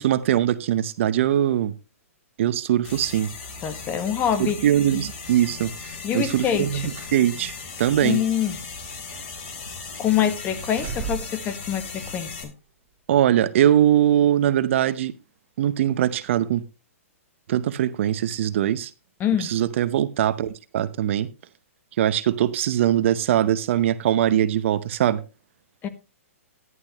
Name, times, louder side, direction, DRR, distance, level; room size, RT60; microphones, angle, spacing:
voice 1, 0.0-1.7 2.4-3.3 4.4-7.5 7.8-8.2 13.1-15.1 15.6-16.6 17.5-18.9 19.4-21.3 22.0-25.2, right 11 dB, 55° right, 0.8 m, -21 dB
sound 1, 2.8-12.4, left 4 dB, 45° left, 3.8 m, -37 dB
voice 2, 3.6-4.6 4.9-5.0 6.0-6.9 8.0-8.6 10.0-12.5 19.2-19.5 25.8-25.9, left 9 dB, 25° left, 1.4 m, -25 dB
sound 2, 6.5-7.2 7.6-7.7 8.5-9.5 9.8-10.2 10.6-11.5 12.4-12.5, right 6 dB, 35° right, 3.7 m, -37 dB
11.5 x 11.0 x 3.0 m
hypercardioid pair, 135°, 8 cm